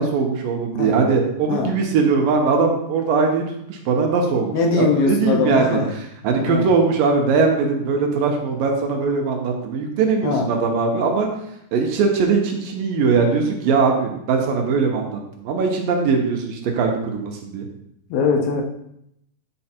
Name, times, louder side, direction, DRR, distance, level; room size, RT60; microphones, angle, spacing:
voice 1, 0.0-3.4 3.7-5.8 6.2-11.3 11.7-17.7, right 4 dB, 75° right, 2 dB, 2.6 m, -20 dB
voice 2, 4.5-5.8 6.4-6.7 10.2-10.5 18.1-18.6, left 4 dB, 75° left, 3 dB, 2.7 m, -21 dB
9.9 x 4.5 x 4.4 m, 0.77 s
omnidirectional pair, 4.3 m